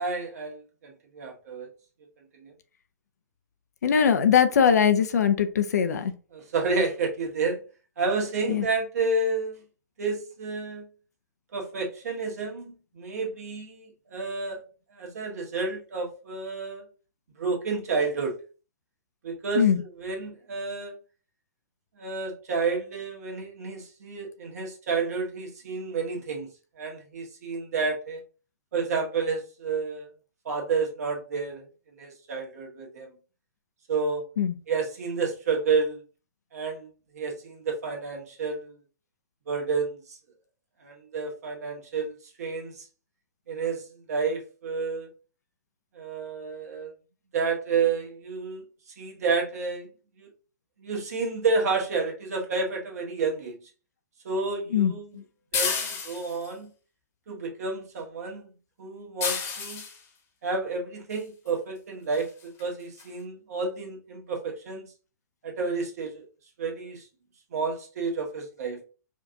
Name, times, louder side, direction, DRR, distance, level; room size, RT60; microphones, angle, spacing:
voice 1, 0.0-1.7 2.4-2.5 6.3-7.6 8.0-9.6 10.0-10.8 11.5-14.6 14.9-16.8 17.4-18.4 19.2-20.9 22.0-26.5 26.8-28.2 28.7-30.1 30.4-31.6 32.0-33.1 33.9-34.2 34.7-36.0 36.5-38.7 39.5-40.2 40.8-42.8 43.5-45.1 45.9-46.9 47.3-48.6 49.0-49.9 50.2-50.3 50.8-53.6 54.2-55.2 55.5-56.7 57.3-58.5 58.8-59.8 60.4-64.9 65.4-66.2 66.6-67.1 67.5-68.8, right 4 dB, 60° right, 1 dB, 1.4 m, -30 dB
voice 2, 3.8-6.1 8.5-8.6 19.6-19.8 34.4-34.5 54.7-55.2, left 7 dB, 65° left, 9 dB, 0.5 m, -21 dB
sound 1, 55.5-56.5 59.2-60.0 61.5-61.6 62.1-62.3 62.6-62.7 63.0-63.1, left 5 dB, 25° left, 1.0 m, -30 dB
5.0 x 2.5 x 2.8 m, 0.35 s
figure-of-eight pair, 110°, 10 cm